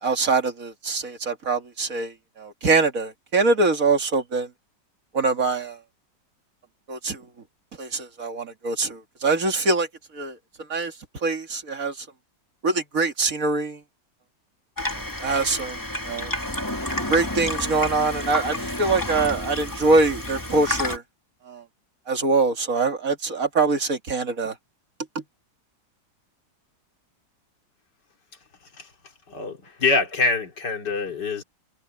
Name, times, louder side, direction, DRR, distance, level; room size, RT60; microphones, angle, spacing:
voice 1, 0.0-4.5 5.1-5.8 6.9-7.2 7.8-9.9 10.1-10.4 10.7-10.9 11.2-12.1 12.6-13.8 15.2-15.8 16.0-16.3 17.1-21.0 21.5-21.6 22.1-24.5 25.2-25.3, right 3 dB, 50° right, 2.4 m, -23 dB
Water tap faucet / Sink (filling or washing), 14.8-21.0, left 1 dB, 10° left, 1.9 m, -30 dB
voice 2, 29.3-31.4, left 3 dB, 70° left, 3.4 m, -25 dB
omnidirectional pair, 1.9 m